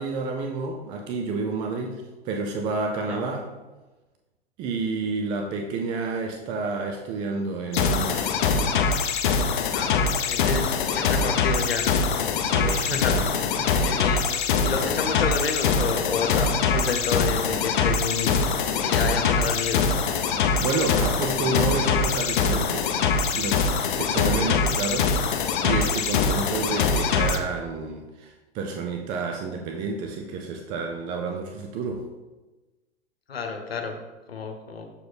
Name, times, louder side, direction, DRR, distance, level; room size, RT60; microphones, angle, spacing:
voice 1, 0.0-3.5 4.6-8.3 12.4-14.2 20.6-22.9 23.3-32.1, right 3 dB, 15° right, 3 dB, 0.3 m, -30 dB
sound 1, 7.7-27.4, left 5 dB, 50° left, 0.7 m, -23 dB
voice 2, 9.7-12.0 12.6-13.1 13.8-20.1 24.2-24.4 33.3-34.0 34.3-34.9, left 5 dB, 70° left, 5 dB, 1.1 m, -30 dB
6.8 x 4.6 x 4.1 m, 1.1 s
figure-of-eight pair, 100°, 32 cm